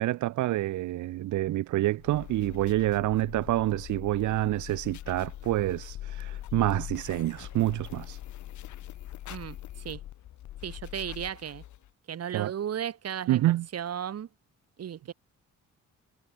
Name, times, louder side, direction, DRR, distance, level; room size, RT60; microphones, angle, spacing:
voice 1, 0.0-8.2 12.3-12.5 13.3-13.7, right 15 dB, 75° right, 0.8 m, -27 dB
sound 1, 2.0-11.9, left 13 dB, 75° left, 2.2 m, -42 dB
voice 2, 10.6-11.6 12.1-14.3 14.8-15.1, right 9 dB, 55° right, 2.2 m, -35 dB
cardioid pair, 90°, 30 cm